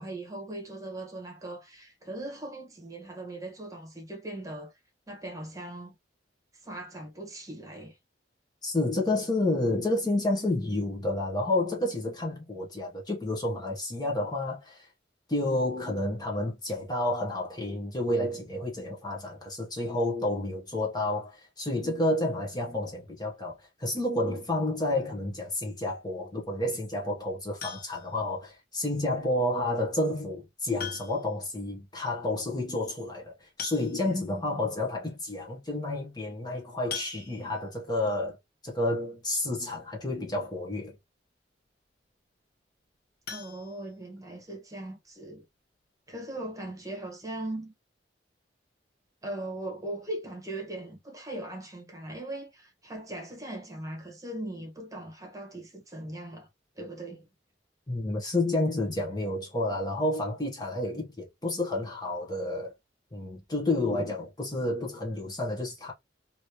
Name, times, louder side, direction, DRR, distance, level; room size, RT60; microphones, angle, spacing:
voice 1, 0.0-4.7 5.1-5.9 6.6-7.9 43.3-45.4 46.1-47.7 49.2-56.5 56.7-57.3, right 1 dB, 20° right, 1.2 m, -39 dB
voice 2, 8.6-14.9 15.3-38.4 38.6-41.0 57.9-62.7 63.1-65.9, left 1 dB, 20° left, 1.0 m, -30 dB
sound 1, 27.6-28.2 29.7-29.8 30.8-31.4 31.7-31.8 32.1-32.2 33.2-33.3 33.6-34.3 34.9-35.0 35.3-35.5 36.9-37.7 43.2-44.4 44.8-44.9 45.3-45.4 45.8-45.9, left 7 dB, 55° left, 0.8 m, -41 dB
3.0 x 2.7 x 3.0 m
head